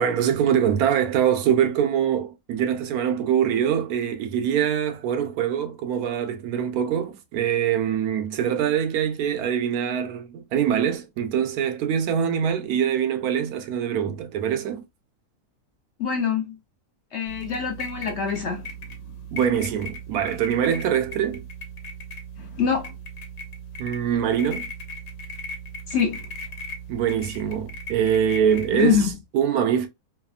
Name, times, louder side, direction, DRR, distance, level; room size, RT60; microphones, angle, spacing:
voice 1, 0.0-14.8 19.3-21.4 23.8-24.7 26.9-29.0 29.3-29.9, right 9 dB, 80° right, 1.1 m, -23 dB
voice 2, 16.0-16.6 17.1-18.7 22.4-22.9 25.9-26.3 28.7-29.1, left 7 dB, 60° left, 0.8 m, -24 dB
sound 1, 17.3-29.1, right 1 dB, 85° left, 1.3 m, -38 dB
3.3 x 2.0 x 2.3 m
omnidirectional pair, 1.6 m